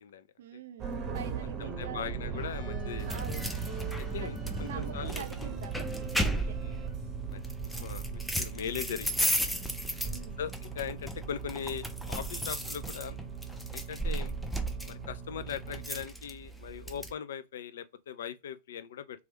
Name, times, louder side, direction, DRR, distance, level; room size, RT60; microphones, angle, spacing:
voice 1, 0.4-2.1 3.0-3.5 4.2-6.6 10.0-10.4, right 9 dB, 60° right, 0.4 m, -45 dB
sound 1, 0.8-16.0, right 6 dB, 25° right, 0.7 m, -39 dB
voice 2, 1.6-3.2 4.0-5.3 6.3-6.8 7.3-9.5 10.4-13.2 13.7-14.4 14.8-19.3, left 8 dB, 60° left, 0.3 m, -40 dB
sound 2, 3.1-17.1, equal, ahead, 0.5 m, -35 dB
3.0 x 2.4 x 2.9 m
figure-of-eight pair, 90°, 0 cm